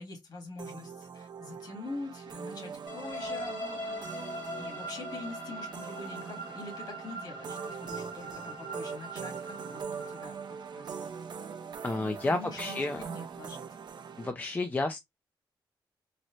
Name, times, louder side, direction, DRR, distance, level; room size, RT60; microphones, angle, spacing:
voice 1, 0.0-4.0 4.6-9.8 10.1-10.4 10.7-11.1 12.2-13.6, left 3 dB, 50° left, 1.7 m, -44 dB
Simple MF, 0.6-14.3, right 6 dB, 55° right, 0.5 m, -42 dB
sound 1, 2.9-10.7, right 1 dB, 85° left, 1.9 m, -41 dB
voice 2, 11.8-13.0 14.2-15.0, left 2 dB, 20° left, 0.4 m, -31 dB
4.0 x 2.1 x 3.0 m
wide cardioid pair, 130°, 9 cm